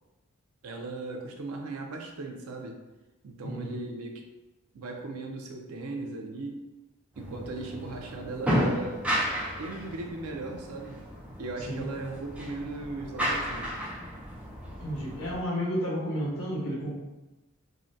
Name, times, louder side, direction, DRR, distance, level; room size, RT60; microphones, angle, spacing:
voice 1, 0.6-2.8 3.2-4.2 4.7-6.6 7.2-9.1 9.6-11.0 11.4-13.8, right 3 dB, 80° right, 3 dB, 0.5 m, -38 dB
voice 2, 3.4-3.8 11.7-11.8 14.8-17.0, equal, 75° left, -3 dB, 0.9 m, -32 dB
sound 1, 7.2-15.4, equal, 5° right, 0.4 m, -33 dB
3.5 x 2.1 x 2.6 m, 1.0 s
head